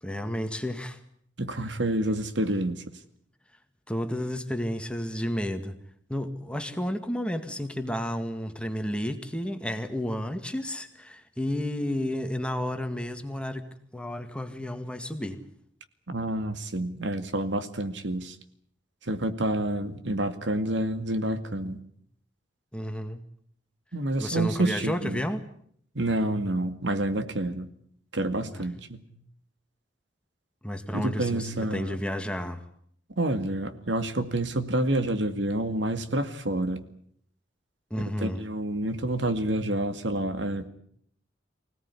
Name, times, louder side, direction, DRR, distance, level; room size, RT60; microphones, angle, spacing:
voice 1, 0.0-1.0 3.9-5.7 6.1-13.6 13.9-15.4 22.7-23.2 24.2-25.4 28.5-28.6 30.6-32.6 37.9-38.4, equal, 5° left, 7 dB, 1.9 m, -31 dB
voice 2, 1.4-2.8 16.1-18.4 19.0-21.8 23.9-25.2 26.0-27.7 28.1-29.0 30.9-32.0 33.2-36.9 38.2-40.7, right 1 dB, 80° right, 9 dB, 2.2 m, -28 dB
25.0 x 17.5 x 9.8 m, 0.66 s
head